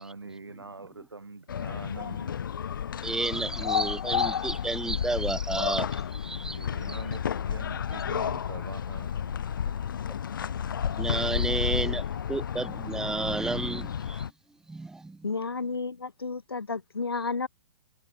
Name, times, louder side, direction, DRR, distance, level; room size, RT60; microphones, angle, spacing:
voice 1, 0.0-2.4 6.6-9.4 9.6-9.7, right 3 dB, 80° right, 1.8 m, -43 dB
sound 1, 1.5-14.3, left 8 dB, 55° left, 1.9 m, -31 dB
voice 2, 3.0-7.0 11.0-14.3 14.7-15.2, right 2 dB, 5° right, 0.7 m, -32 dB
voice 3, 15.2-17.5, left 4 dB, 75° left, 2.7 m, -32 dB
figure-of-eight pair, 120°, 13 cm